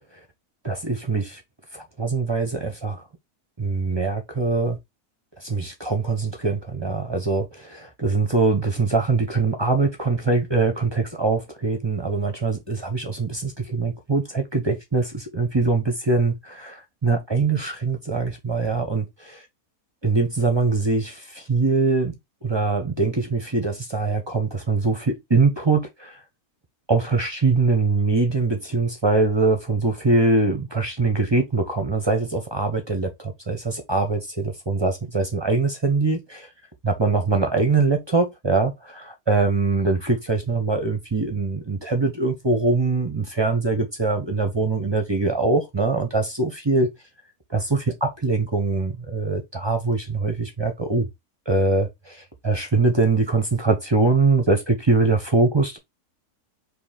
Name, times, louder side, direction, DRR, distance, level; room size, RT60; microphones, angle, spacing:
voice 1, 0.6-1.4 1.7-3.0 3.6-4.8 5.4-19.4 20.0-22.1 22.4-26.2 26.9-36.5 36.8-46.9 47.5-51.1 51.5-55.8, right 3 dB, 30° right, 0.5 m, -23 dB
4.5 x 2.9 x 3.7 m
omnidirectional pair, 1.6 m